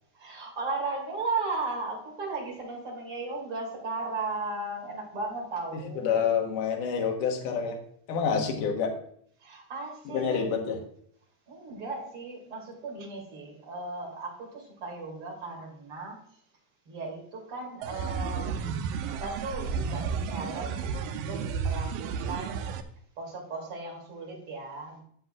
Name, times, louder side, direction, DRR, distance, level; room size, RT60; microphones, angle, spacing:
voice 1, 0.1-6.2 9.4-10.5 11.5-16.2 16.9-18.8 19.1-22.7 23.2-25.0, right 3 dB, 40° right, -2 dB, 3.2 m, -36 dB
voice 2, 5.7-7.8 8.1-8.9 10.1-10.8, left 6 dB, 65° left, 2 dB, 2.6 m, -28 dB
sound 1, 17.8-22.8, right 6 dB, 85° right, 2.0 m, -32 dB
12.0 x 7.7 x 2.5 m, 0.64 s
omnidirectional pair, 4.6 m